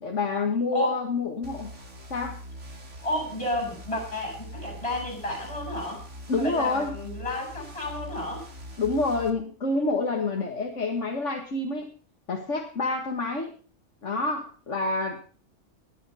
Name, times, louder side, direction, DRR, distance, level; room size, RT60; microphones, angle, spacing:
voice 1, 0.0-1.7 2.1-2.4 6.3-6.9 8.8-11.9 12.3-13.5 14.0-15.2, left 3 dB, 75° left, 2 dB, 2.1 m, -28 dB
sound 1, 1.4-9.3, equal, 80° right, 2.8 m, -42 dB
voice 2, 3.0-6.0 6.4-8.5, left 1 dB, 25° left, 1 dB, 6.9 m, -31 dB
18.0 x 11.0 x 5.6 m, 0.41 s
omnidirectional pair, 1.2 m